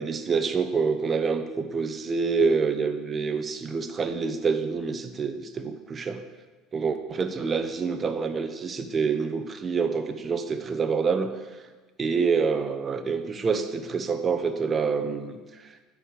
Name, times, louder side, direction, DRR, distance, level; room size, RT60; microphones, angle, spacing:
voice 1, 0.0-6.2 6.7-11.3 12.0-15.4, right 5 dB, 30° right, 8 dB, 0.9 m, -27 dB
9.8 x 4.8 x 7.1 m, 1.3 s
supercardioid pair, 85°, 0 cm